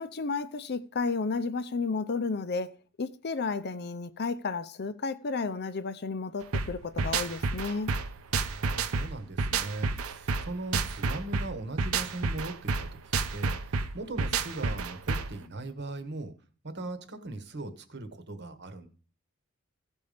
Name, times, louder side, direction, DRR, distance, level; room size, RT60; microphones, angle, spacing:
voice 1, 0.0-7.9, left 4 dB, 45° left, 0.6 m, -32 dB
sound 1, 6.5-15.4, right 4 dB, 65° right, 0.8 m, -30 dB
voice 2, 8.3-16.3 16.6-18.9, right 2 dB, 50° right, 1.3 m, -39 dB
15.0 x 5.3 x 5.1 m
head